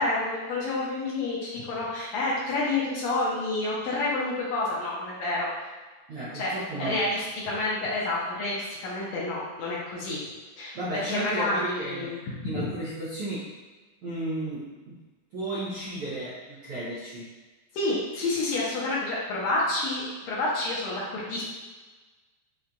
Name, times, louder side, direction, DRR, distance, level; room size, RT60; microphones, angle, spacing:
voice 1, 0.0-5.5 6.3-6.5 6.8-10.2 10.6-12.7 17.7-21.4, left 2 dB, 75° left, -6 dB, 1.8 m, -29 dB
voice 2, 6.1-7.0 10.7-12.1 12.4-13.5 14.0-15.0 15.3-17.3, right 1 dB, 75° right, -9 dB, 1.2 m, -33 dB
5.8 x 2.5 x 2.2 m, 1.3 s
omnidirectional pair, 3.4 m